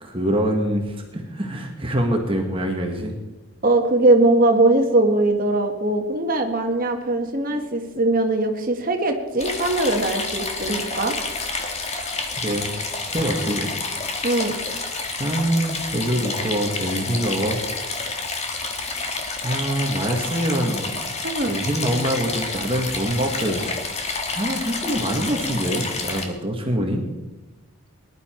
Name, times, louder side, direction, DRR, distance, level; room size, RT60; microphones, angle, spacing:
voice 1, 0.0-3.1 11.8-12.7 13.1-13.7 14.0-14.3 15.2-17.6 18.8-19.0 19.4-21.1 21.4-23.6 24.3-27.0, equal, 25° right, 2 dB, 1.6 m, -25 dB
voice 2, 3.6-11.2 14.2-14.6 21.2-21.5, right 2 dB, 40° right, 4 dB, 1.7 m, -20 dB
sound 1, 9.4-26.3, left 3 dB, 30° left, 1.6 m, -29 dB
20.0 x 11.5 x 4.5 m, 1.1 s
head